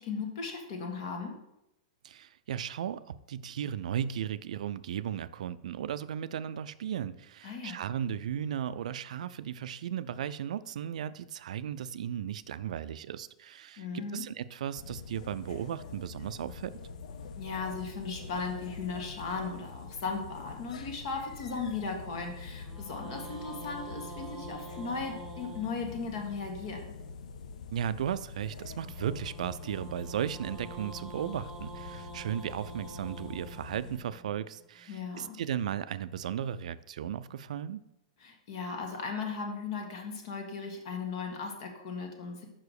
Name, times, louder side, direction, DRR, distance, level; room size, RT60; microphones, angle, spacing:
voice 1, 0.0-1.3 7.4-7.8 13.8-14.2 17.3-26.8 34.9-35.4 38.2-42.5, left 4 dB, 55° left, 3 dB, 1.6 m, -37 dB
voice 2, 2.0-16.7 27.7-37.8, right 9 dB, 80° right, 15 dB, 0.4 m, -36 dB
sound 1, 14.7-34.0, left 5 dB, 75° left, 0.7 m, -45 dB
sound 2, 17.8-20.2 22.4-26.6 28.7-34.9, right 2 dB, 10° right, 1.0 m, -48 dB
5.7 x 4.8 x 6.4 m, 0.86 s
supercardioid pair, 155°, 4 cm